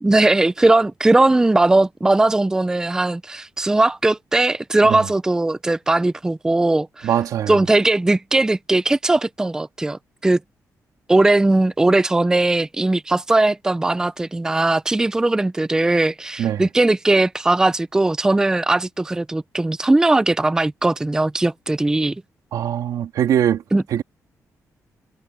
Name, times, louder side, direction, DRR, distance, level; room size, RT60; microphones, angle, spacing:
voice 1, 0.0-7.1 7.5-10.4 11.1-22.2 23.7-23.8, right 2 dB, 10° right, 0.5 m, -19 dB
voice 2, 7.0-7.6 16.4-16.6 22.5-23.6 23.9-24.0, right 10 dB, 85° right, 3.0 m, -21 dB
cardioid pair, 135°, 6 cm